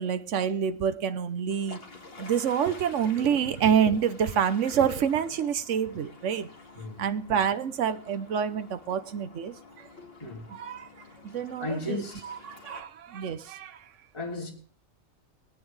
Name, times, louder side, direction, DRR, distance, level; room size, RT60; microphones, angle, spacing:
voice 1, 0.0-1.8 2.2-6.5 7.0-9.5 10.5-10.9 11.2-12.0 12.4-13.8, right 8 dB, 65° right, 1.2 m, -27 dB
sound 1, 1.5-12.8, left 3 dB, 45° left, 2.1 m, -49 dB
voice 2, 10.2-10.5 11.6-12.3 14.1-14.5, left 2 dB, 20° left, 3.1 m, -35 dB
21.0 x 9.3 x 3.2 m
omnidirectional pair, 1.4 m